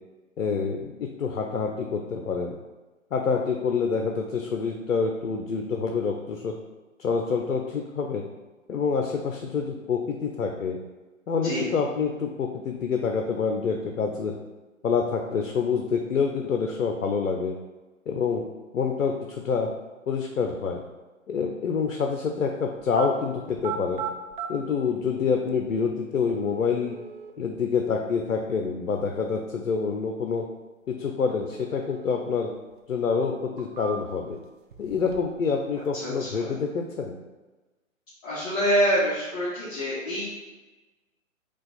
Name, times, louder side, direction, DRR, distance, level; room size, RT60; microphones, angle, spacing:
voice 1, 0.4-2.6 3.1-6.5 7.0-8.2 8.7-10.8 11.3-14.3 14.8-17.5 18.1-18.4 18.7-19.7 20.1-20.8 21.3-24.0 24.5-27.0 27.4-30.4 30.9-32.5 32.9-34.4 34.8-37.2, left 5 dB, 85° left, 3 dB, 0.6 m, -27 dB
sound 1, 22.8-23.1 23.5-24.5 25.5-25.6 26.3-27.3 31.3-32.3 32.7-32.8 33.4-34.3 34.7-35.4 35.7-36.3, right 7 dB, 40° right, 0.4 m, -37 dB
voice 2, 35.9-36.5 38.2-40.3, equal, 25° left, -10 dB, 1.2 m, -26 dB
4.9 x 2.3 x 4.0 m, 1.2 s
hypercardioid pair, 140°, 41 cm